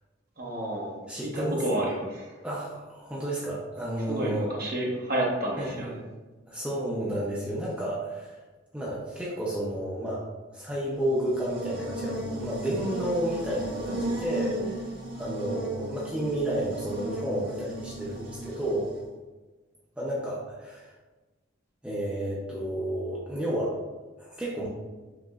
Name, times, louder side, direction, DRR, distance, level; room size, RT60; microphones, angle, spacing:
voice 1, 0.4-0.9 1.2-2.3 4.1-5.9 18.2-18.3, right 1 dB, 50° right, -3 dB, 0.9 m, -30 dB
voice 2, 1.1-1.8 2.4-4.5 5.6-6.0 6.5-8.4 8.7-10.2 10.5-18.9 20.0-20.9 21.8-23.8 24.2-24.7, right 1 dB, 5° right, -6 dB, 0.5 m, -31 dB
Buzz, 10.9-19.0, right 1 dB, 75° right, 1.2 m, -36 dB
4.8 x 2.9 x 2.3 m, 1.2 s
head